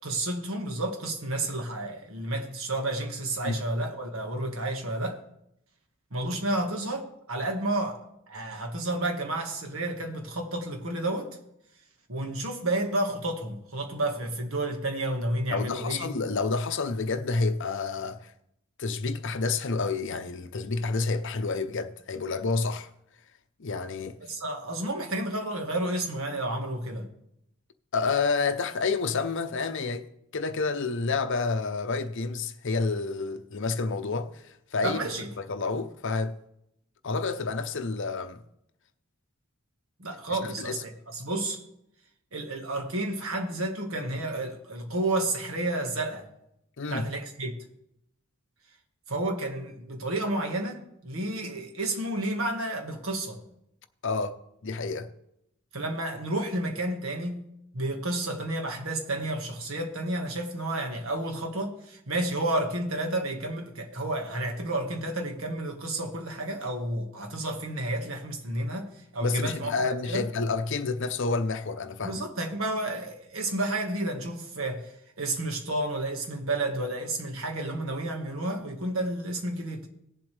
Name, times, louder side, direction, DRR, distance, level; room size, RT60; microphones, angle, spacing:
voice 1, 0.0-5.2 6.1-8.0 8.3-11.3 12.1-16.1 24.3-27.1 34.8-35.3 40.0-41.6 42.3-46.3 46.9-47.5 49.1-53.4 55.7-57.5 57.7-70.2 72.0-74.9 75.2-79.9, right 1 dB, 70° right, 1.7 m, -31 dB
voice 2, 15.5-18.3 18.8-22.9 23.6-24.2 27.9-30.1 30.3-35.1 35.4-36.4 37.0-38.4 40.3-40.8 46.8-47.1 54.0-54.4 54.6-55.1 69.2-72.2, left 4 dB, 60° left, 0.7 m, -29 dB
18.0 x 7.5 x 3.3 m
head